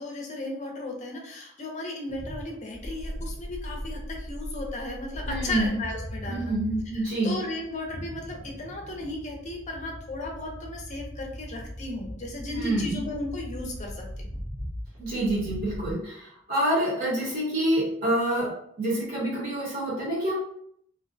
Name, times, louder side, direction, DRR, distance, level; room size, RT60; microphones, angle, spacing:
voice 1, 0.0-6.5 6.9-14.3, left 2 dB, 35° left, 0 dB, 0.5 m, -35 dB
sound 1, 2.1-15.9, equal, 70° right, 1.0 m, -39 dB
voice 2, 5.3-5.8 6.3-7.4 12.5-13.0 15.0-18.5 18.8-20.3, right 1 dB, 45° right, -6 dB, 0.8 m, -27 dB
2.5 x 2.1 x 2.5 m, 0.68 s
head